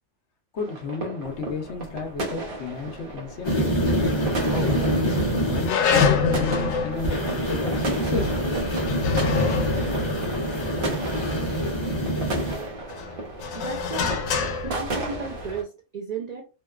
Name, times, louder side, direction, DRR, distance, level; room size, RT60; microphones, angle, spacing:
voice 1, 0.5-3.7 4.5-8.3, left 4 dB, 65° left, 4 dB, 0.8 m, -32 dB
sound 1, 0.6-15.6, right 2 dB, 50° right, 0.8 m, -35 dB
sound 2, 3.4-5.7 7.0-12.6, equal, 30° left, 0.5 m, -25 dB
sound 3, 3.7-4.4 4.8-4.9 5.6-11.7 12.2-15.6, left 5 dB, 90° left, 1.0 m, -27 dB
voice 2, 13.5-14.3 14.6-16.4, right 4 dB, 75° right, 0 dB, 0.3 m, -34 dB
2.8 x 2.2 x 2.3 m, 0.31 s
omnidirectional pair, 1.3 m